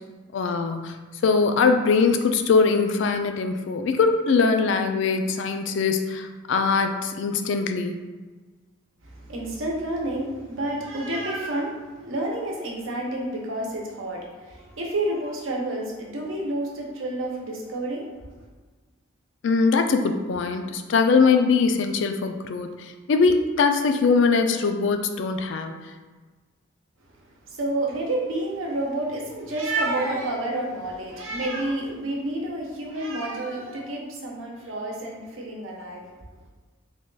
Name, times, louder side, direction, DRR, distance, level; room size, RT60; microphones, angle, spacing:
voice 1, 0.3-1.0 1.2-8.0 19.4-25.8, left 4 dB, 65° left, 6 dB, 0.3 m, -22 dB
voice 2, 9.0-18.1 27.4-36.0, right 1 dB, 75° right, -1 dB, 0.8 m, -29 dB
3.4 x 2.3 x 3.8 m, 1.3 s
head